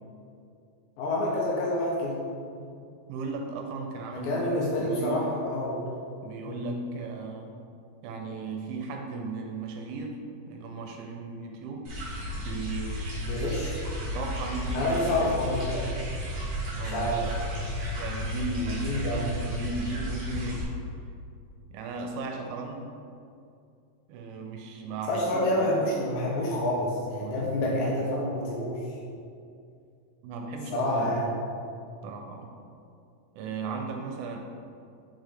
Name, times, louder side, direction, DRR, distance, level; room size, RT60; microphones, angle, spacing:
voice 1, 1.0-2.2 4.1-5.9 6.5-6.7 13.3-13.8 14.7-15.9 16.8-17.2 18.8-19.2 25.1-28.9 30.7-31.4, left 1 dB, 75° left, -4 dB, 2.7 m, -28 dB
voice 2, 3.1-5.3 6.2-7.5 8.0-10.2 10.5-11.8 12.3-13.3 14.1-15.2 16.8-17.1 18.0-20.7 21.7-22.9 24.1-25.7 27.2-27.5 30.2-31.1 32.0-32.5 33.4-34.4, right 3 dB, 80° right, 2 dB, 3.0 m, -36 dB
sound 1, 11.8-20.6, equal, 50° right, 2.3 m, -33 dB
7.2 x 5.4 x 3.7 m, 2.5 s
omnidirectional pair, 5.7 m